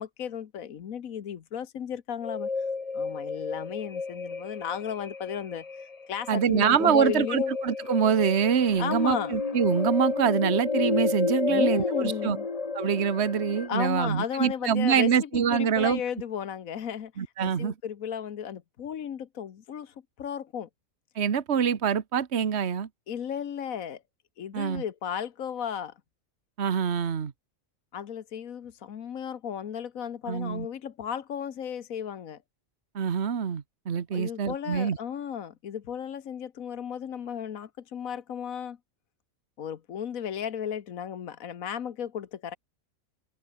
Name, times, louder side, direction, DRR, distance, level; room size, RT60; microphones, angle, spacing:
voice 1, 0.0-7.5 8.8-9.3 11.5-12.5 13.7-20.7 23.1-24.0 24.4-25.9 27.9-32.4 34.1-38.8 39.6-42.6, left 8 dB, 80° left, 1.5 m, -34 dB
sound 1, 2.2-13.7, left 4 dB, 30° left, 1.2 m, -31 dB
voice 2, 6.3-12.4 12.7-16.0 17.2-17.7 21.2-22.9 24.5-24.8 26.6-27.3 30.3-30.7 32.9-35.0, right 7 dB, 55° right, 1.5 m, -25 dB
open air
omnidirectional pair, 1.4 m